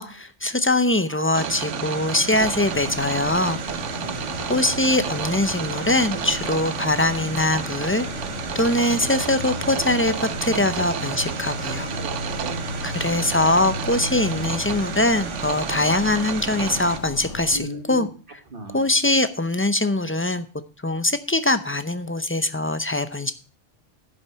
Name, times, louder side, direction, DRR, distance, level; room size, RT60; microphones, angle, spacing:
voice 1, 0.0-3.6 4.5-8.1 8.5-11.9 12.8-18.4 18.7-20.4 20.8-23.3, left 2 dB, 20° left, 11 dB, 0.4 m, -22 dB
sound 1, 1.3-17.0, right 8 dB, 80° right, 1.1 m, -31 dB
sound 2, 2.3-17.6, left 5 dB, 75° left, 1.2 m, -35 dB
voice 2, 3.9-4.6 10.6-10.7 12.0-12.1 12.3-13.0 17.5-18.1 18.5-18.9, right 1 dB, 50° right, 7 dB, 1.7 m, -38 dB
11.0 x 6.3 x 5.5 m, 0.37 s
omnidirectional pair, 1.3 m